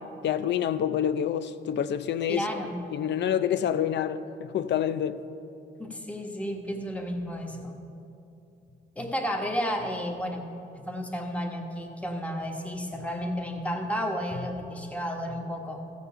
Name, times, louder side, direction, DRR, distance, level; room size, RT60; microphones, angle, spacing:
voice 1, 0.2-2.5 2.9-5.2, left 9 dB, 60° left, 0.5 m, -27 dB
voice 2, 2.3-2.8 5.8-7.7 8.9-10.4 10.7-15.8, equal, 5° left, 1.3 m, -32 dB
14.5 x 7.0 x 5.6 m
cardioid pair, 90°, 20 cm